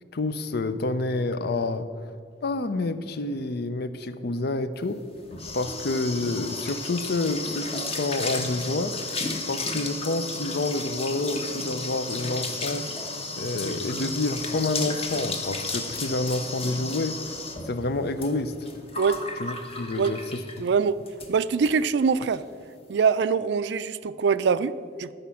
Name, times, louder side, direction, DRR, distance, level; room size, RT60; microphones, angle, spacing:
voice 1, 0.1-2.1 2.4-5.0 5.5-8.9 9.5-12.9 13.4-17.2 17.6-18.7 19.4-20.2, left 2 dB, 60° left, 0.6 m, -28 dB
sound 1, 4.9-20.7 21.1-21.3 21.6-21.7 22.0-22.4, left 3 dB, 35° left, 1.1 m, -33 dB
voice 2, 20.6-21.0 21.3-22.4 22.9-25.1, right 5 dB, 70° right, 0.4 m, -23 dB
13.0 x 5.1 x 7.0 m
head